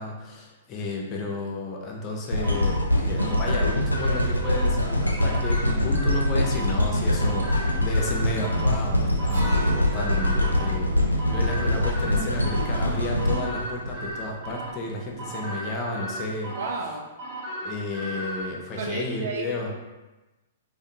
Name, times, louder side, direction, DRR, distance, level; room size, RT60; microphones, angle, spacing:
voice 1, 0.0-16.5 17.6-19.7, left 2 dB, 30° left, -1 dB, 0.5 m, -32 dB
sound 1, 2.3-14.5 15.1-15.2, left 1 dB, 85° left, 0.4 m, -24 dB
sound 2, 2.4-18.4, right 1 dB, 30° right, 0.8 m, -36 dB
Acoustic guitar, 9.3-14.2, left 1 dB, 70° right, 1.2 m, -39 dB
voice 2, 10.1-11.2 16.5-17.1 18.8-19.7, right 3 dB, 55° right, 1 dB, 0.4 m, -34 dB
2.6 x 2.2 x 2.5 m, 1.1 s
figure-of-eight pair, 110°, 0 cm